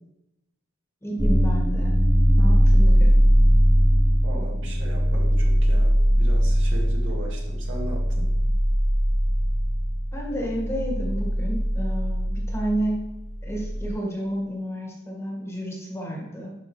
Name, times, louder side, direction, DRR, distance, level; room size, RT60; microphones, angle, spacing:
voice 1, 1.0-2.0 2.4-3.1 10.1-13.0 13.4-16.5, equal, 15° left, -2 dB, 1.9 m, -31 dB
sound 1, 1.2-13.9, equal, 15° right, 1.2 m, -20 dB
voice 2, 4.2-8.3, right 1 dB, 65° right, -2 dB, 2.1 m, -38 dB
11.5 x 5.6 x 3.3 m, 0.89 s
head